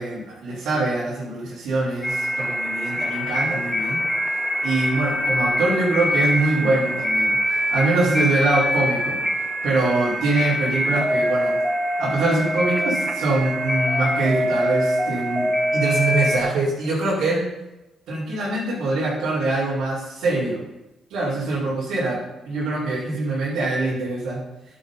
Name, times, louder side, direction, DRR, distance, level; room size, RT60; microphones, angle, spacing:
voice 1, 0.0-4.0 4.6-7.4 7.7-9.2 9.6-11.6 12.0-15.5 15.7-17.4 18.1-20.6 21.1-22.2 22.4-24.4, right 2 dB, 80° right, -8 dB, 4.9 m, -23 dB
sound 1, 2.0-16.4, equal, 10° left, 2.0 m, -24 dB
10.5 x 9.4 x 5.7 m, 0.96 s
cardioid pair, 90°, 0 cm